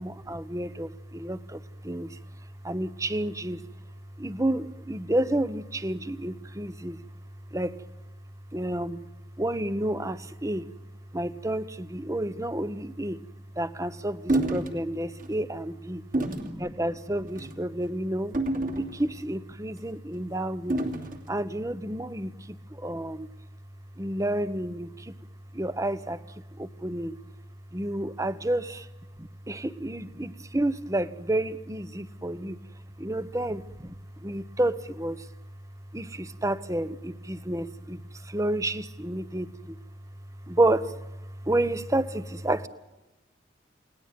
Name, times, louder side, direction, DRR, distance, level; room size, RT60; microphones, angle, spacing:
voice 1, 0.0-3.6 4.2-7.0 7.5-7.8 8.5-9.1 9.4-10.7 11.1-13.2 13.6-18.3 18.8-20.9 21.3-23.3 24.0-25.2 25.5-27.2 27.7-28.9 29.2-32.6 33.0-35.3 35.9-39.8 40.4-42.7, right 1 dB, 15° right, 14 dB, 1.0 m, -30 dB
sound 1, 14.3-14.7 15.2-15.4 16.1-16.5 17.3-17.6 18.3-19.3 20.7-21.2, right 2 dB, 45° right, 2.9 m, -28 dB
29.5 x 19.0 x 9.3 m, 1.1 s
head